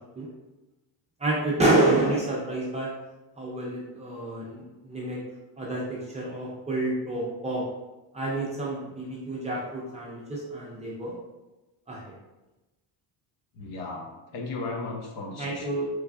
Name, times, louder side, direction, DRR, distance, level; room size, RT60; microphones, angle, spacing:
voice 1, 1.2-2.9 3.4-5.2 5.6-7.6 8.1-11.1 11.9-12.0 15.4-15.9, right 2 dB, 15° right, -6 dB, 0.4 m, -28 dB
voice 2, 13.5-15.7, left 3 dB, 80° left, 1 dB, 0.8 m, -35 dB
3.5 x 3.2 x 2.3 m, 1.0 s
cardioid pair, 175°, 46 cm